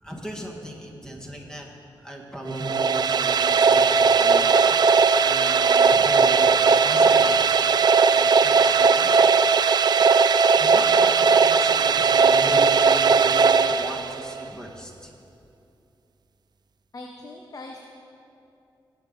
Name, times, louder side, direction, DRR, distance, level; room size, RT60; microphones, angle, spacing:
voice 1, 0.0-1.7 2.0-7.5 8.0-9.3 10.0-10.1 10.4-15.1, right 1 dB, 10° left, 0 dB, 1.6 m, -37 dB
sound 1, 2.5-14.4, right 5 dB, 55° right, 0.4 m, -18 dB
voice 2, 16.9-17.8, left 2 dB, 45° left, 2 dB, 0.9 m, -40 dB
18.5 x 6.6 x 5.4 m, 2.7 s
wide cardioid pair, 115°, 9 cm